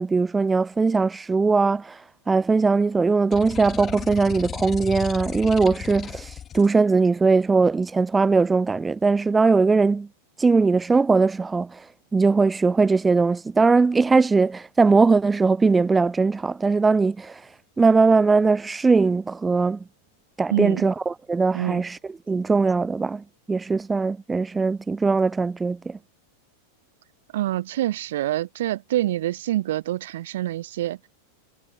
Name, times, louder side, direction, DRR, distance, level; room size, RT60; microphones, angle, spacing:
voice 1, 0.0-2.0 2.3-10.1 10.4-11.8 12.1-17.3 17.8-19.8 20.4-22.0 22.3-26.0, right 4 dB, 10° right, 1.2 m, -20 dB
sound 1, 3.3-6.7, left 9 dB, 25° left, 4.7 m, -35 dB
voice 2, 20.5-20.9 21.5-21.8 27.3-31.0, right 14 dB, 55° right, 0.9 m, -26 dB
figure-of-eight pair, 90°, 0 cm